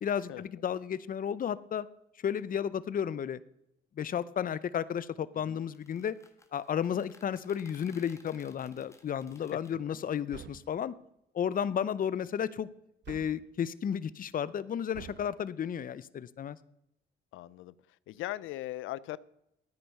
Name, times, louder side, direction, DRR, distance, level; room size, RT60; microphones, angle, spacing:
voice 1, 0.0-1.9 2.2-3.4 4.0-6.2 6.5-10.9 11.3-12.7 13.1-16.6, left 8 dB, 45° left, 18 dB, 0.6 m, -33 dB
sound 1, 5.6-9.8, left 2 dB, 15° left, 1.6 m, -60 dB
sound 2, 10.3-10.8 13.0-13.5 14.9-15.3, right 9 dB, 60° right, 0.7 m, -48 dB
voice 2, 17.3-17.7 18.1-19.2, left 15 dB, 90° left, 20 dB, 0.5 m, -39 dB
12.5 x 9.5 x 5.5 m, 0.81 s
cardioid pair, 90°, 20 cm